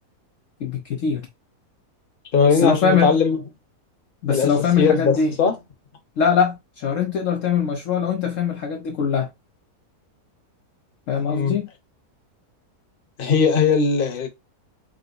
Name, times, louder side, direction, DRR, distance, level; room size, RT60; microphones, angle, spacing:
voice 1, 0.6-1.2 2.5-3.2 4.2-5.3 6.2-9.3 11.1-11.7, left 6 dB, 65° left, 0.9 m, -22 dB
voice 2, 2.3-3.4 4.3-4.5 4.8-5.5 11.3-11.6 13.2-14.3, left 5 dB, 40° left, 1.0 m, -19 dB
4.9 x 2.1 x 3.9 m
omnidirectional pair, 1.6 m